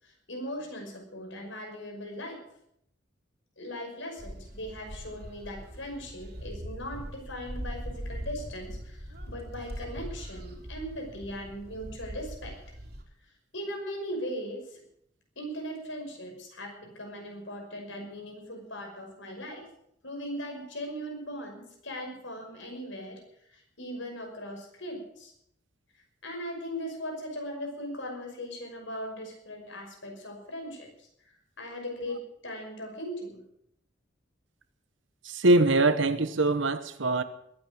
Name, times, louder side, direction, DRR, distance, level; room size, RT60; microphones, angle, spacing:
voice 1, 0.0-2.4 3.6-12.5 13.5-14.8 15.4-19.6 20.0-23.2 23.5-25.3 26.2-31.1 31.6-33.4, equal, 75° left, 2 dB, 5.8 m, -39 dB
sound 1, 4.2-13.0, equal, 55° right, 3.1 m, -41 dB
voice 2, 35.2-37.2, right 2 dB, 75° right, 12 dB, 1.2 m, -23 dB
21.5 x 9.0 x 6.6 m, 0.74 s
head